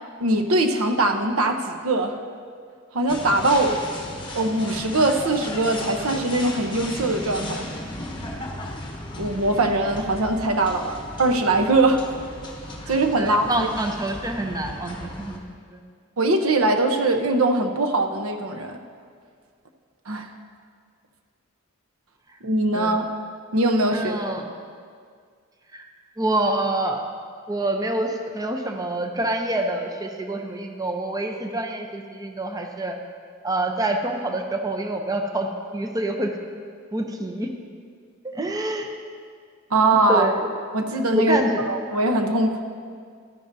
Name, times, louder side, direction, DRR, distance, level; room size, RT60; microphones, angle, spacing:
voice 1, 0.2-2.1 2.9-3.8 4.3-7.7 9.2-12.0 12.9-13.7 16.2-18.8 20.1-20.3 22.4-23.1 23.5-24.2 39.7-40.3 40.7-41.4 41.7-42.6, right 2 dB, 85° right, 5 dB, 0.8 m, -21 dB
sound 1, 3.1-15.4, left 1 dB, 20° left, 1.1 m, -36 dB
voice 2, 13.2-15.4 15.7-15.8 22.7-22.9 23.9-24.4 25.7-25.9 26.2-27.0 27.5-33.0 33.4-35.5 35.7-36.3 36.9-37.5 38.2-38.9 40.1-40.5 41.1-41.6, right 1 dB, 15° right, 4 dB, 0.6 m, -26 dB
13.0 x 10.5 x 2.7 m, 2.1 s
head